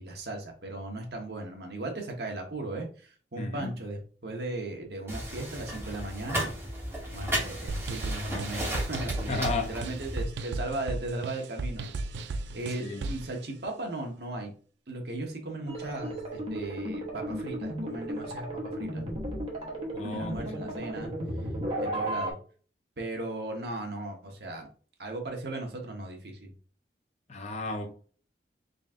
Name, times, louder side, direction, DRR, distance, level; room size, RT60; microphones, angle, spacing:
voice 1, 0.0-6.5 7.1-11.9 12.3-14.5 14.9-19.0 20.1-21.1 21.8-22.4 23.0-24.7 25.0-26.5, right 2 dB, 65° right, 1.0 m, -37 dB
voice 2, 3.3-3.7 9.3-9.7 12.8-13.1 19.9-20.7 27.3-27.9, left 3 dB, 40° left, 0.6 m, -34 dB
sound 1, 5.1-10.2, right 1 dB, 15° right, 1.4 m, -34 dB
sound 2, 7.7-13.3, right 2 dB, 85° right, 0.4 m, -35 dB
sound 3, 15.7-22.3, right 1 dB, 35° right, 0.9 m, -34 dB
4.0 x 2.5 x 3.6 m
head